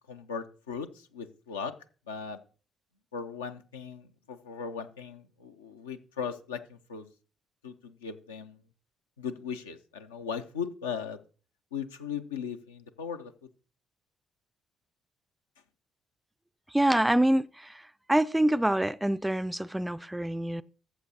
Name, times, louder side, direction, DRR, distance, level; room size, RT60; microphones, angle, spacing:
voice 1, 0.1-1.7 2.1-2.4 3.1-7.1 7.6-8.6 9.2-11.2 11.7-13.3, left 6 dB, 80° left, 0.5 m, -38 dB
voice 2, 16.7-17.8 18.1-20.6, right 1 dB, 10° right, 0.3 m, -26 dB
14.0 x 7.3 x 2.8 m
figure-of-eight pair, 45°, 0 cm